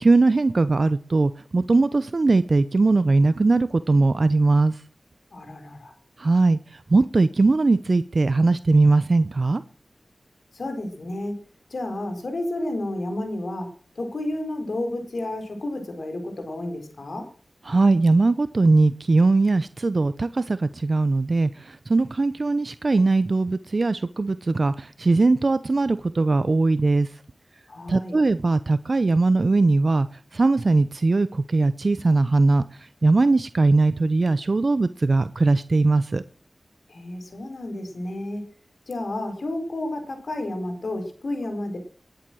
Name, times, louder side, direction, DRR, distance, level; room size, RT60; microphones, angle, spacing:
voice 1, 0.0-4.8 6.2-9.6 17.7-27.2 27.9-36.2, right 3 dB, 55° right, 14 dB, 0.7 m, -20 dB
voice 2, 5.3-5.9 10.5-11.4 11.7-17.3 27.7-28.2 36.9-38.4 38.9-41.8, left 1 dB, 70° left, 5 dB, 4.9 m, -31 dB
20.0 x 10.5 x 6.3 m, 0.43 s
wide cardioid pair, 55°, 0 cm